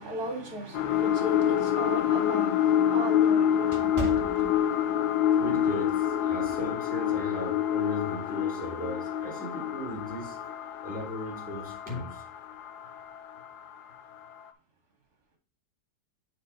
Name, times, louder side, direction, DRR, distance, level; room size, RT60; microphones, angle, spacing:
voice 1, 0.0-4.3, equal, 65° right, 2.6 m, -37 dB
sound 1, 0.7-13.9 14.4-14.5, left 10 dB, 75° left, 1.2 m, -27 dB
sound 2, 2.2-5.2 5.6-5.8 6.4-6.7, right 3 dB, 30° right, 0.6 m, -39 dB
voice 2, 5.3-10.4 10.8-12.2, equal, 5° right, 2.8 m, -37 dB
6.8 x 5.1 x 4.7 m
omnidirectional pair, 1.8 m